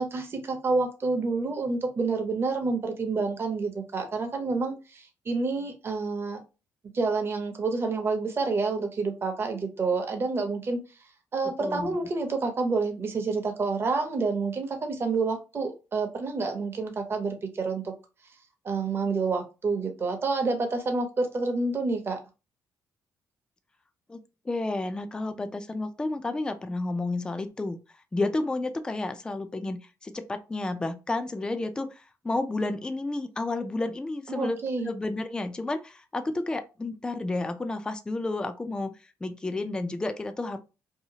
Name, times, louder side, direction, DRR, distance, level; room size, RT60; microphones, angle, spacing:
voice 1, 0.0-6.4 6.9-10.8 11.3-17.9 18.6-22.2 34.3-34.9, right 3 dB, 35° right, 0.7 m, -28 dB
voice 2, 11.6-12.0 24.1-24.2 24.5-27.8 28.1-38.9 39.2-40.6, left 2 dB, 10° left, 0.3 m, -31 dB
2.7 x 2.3 x 2.7 m
cardioid pair, 105°, 7 cm